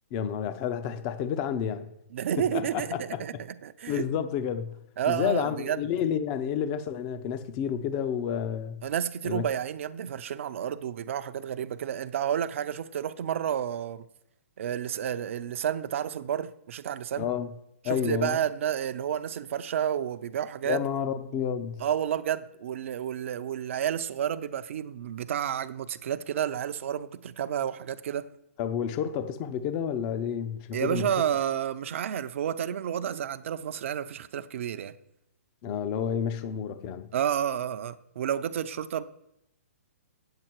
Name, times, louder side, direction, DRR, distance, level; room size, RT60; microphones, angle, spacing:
voice 1, 0.1-1.9 2.4-3.2 3.9-4.8 5.1-8.8 9.2-9.4 17.2-17.5 17.8-18.4 20.6-21.8 28.6-31.1 35.6-37.1, left 8 dB, 30° left, 0.6 m, -30 dB
voice 2, 2.1-3.4 3.6-4.1 5.0-5.8 8.8-14.1 14.6-17.3 17.9-20.8 21.8-28.3 30.7-34.9 37.1-39.0, right 9 dB, 55° right, 0.5 m, -30 dB
8.8 x 7.7 x 4.5 m
hypercardioid pair, 140°, 8 cm